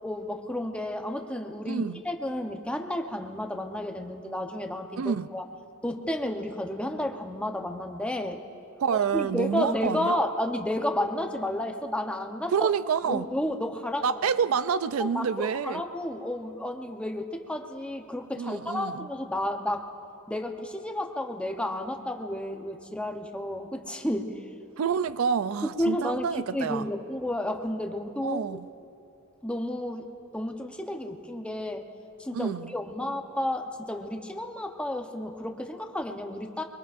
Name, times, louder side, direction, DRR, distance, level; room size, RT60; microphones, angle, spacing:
voice 1, 0.0-5.4 5.8-8.4 9.1-12.7 13.1-14.2 15.0-19.9 20.3-24.5 25.6-28.4 29.4-30.0 30.3-31.9 32.2-36.6, left 1 dB, 5° left, 0.8 m, -32 dB
voice 2, 1.7-2.0 5.0-5.3 8.8-10.2 12.5-13.3 14.0-15.8 18.4-19.1 24.8-26.8 28.2-28.7 32.3-32.7, right 6 dB, 70° right, 0.4 m, -28 dB
24.0 x 23.0 x 2.5 m
head